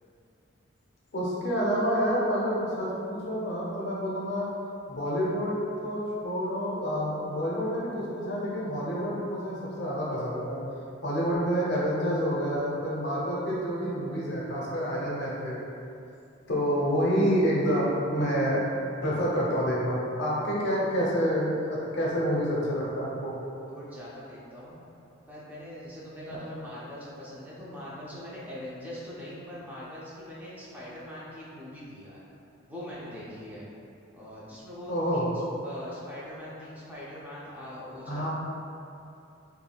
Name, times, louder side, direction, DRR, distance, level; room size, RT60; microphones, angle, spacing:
voice 1, 1.1-4.5 4.9-10.6 11.0-15.6 16.5-18.6 19.0-23.3 34.9-35.3 38.1-38.3, equal, 60° left, -5 dB, 0.6 m, -28 dB
voice 2, 23.7-24.8 25.3-32.2 32.7-33.6 34.1-35.2 35.6-38.3, left 1 dB, 10° right, -8 dB, 0.4 m, -42 dB
3.3 x 2.2 x 2.2 m, 2.7 s
head